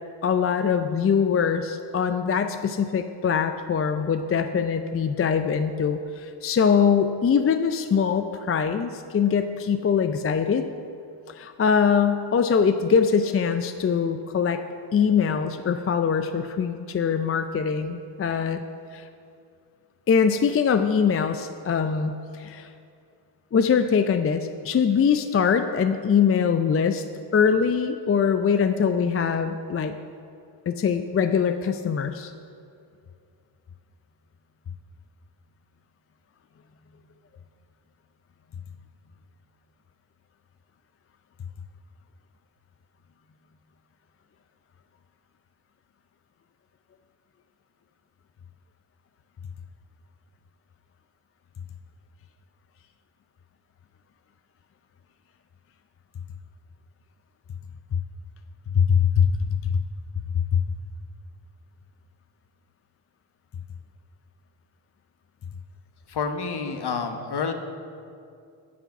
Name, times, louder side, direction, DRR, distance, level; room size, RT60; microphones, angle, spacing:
voice 1, 0.2-10.6 11.4-14.6 14.9-18.6 18.9-19.1 20.1-22.7 23.5-27.0 27.3-29.9 30.7-32.3 58.8-59.3 59.6-59.7 60.5-60.6, left 6 dB, 30° left, 8 dB, 0.4 m, -22 dB
voice 2, 66.1-67.5, left 5 dB, 50° left, 6 dB, 1.1 m, -28 dB
9.7 x 5.7 x 5.9 m, 2.4 s
supercardioid pair, 50°, 49 cm